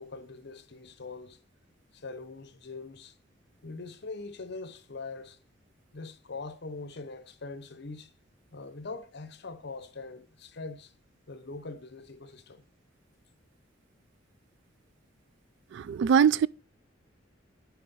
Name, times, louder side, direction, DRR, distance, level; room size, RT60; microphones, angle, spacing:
voice 1, 0.0-1.4 1.9-3.1 3.6-5.4 5.9-8.1 8.5-10.9 11.3-12.6, left 3 dB, 60° left, 0.9 m, -42 dB
voice 2, 15.7-16.5, right 7 dB, 65° right, 0.3 m, -22 dB
7.5 x 4.8 x 5.4 m
head